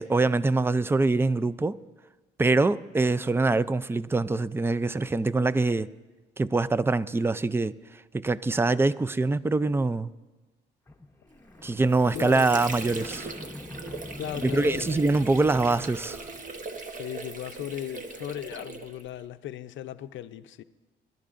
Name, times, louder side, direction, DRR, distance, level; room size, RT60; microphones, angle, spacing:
voice 1, 0.0-1.8 2.4-5.9 6.4-7.7 8.1-10.1 11.6-13.3 14.4-16.2, right 3 dB, 10° right, 0.4 m, -24 dB
sound 1, 10.9-16.7, left 2 dB, 15° left, 0.8 m, -44 dB
Water / Sink (filling or washing), 11.6-19.2, right 3 dB, 40° right, 1.1 m, -40 dB
voice 2, 12.1-12.6 14.2-15.3 16.9-20.6, left 11 dB, 70° left, 0.6 m, -37 dB
25.0 x 12.0 x 2.5 m
cardioid pair, 90°, 20 cm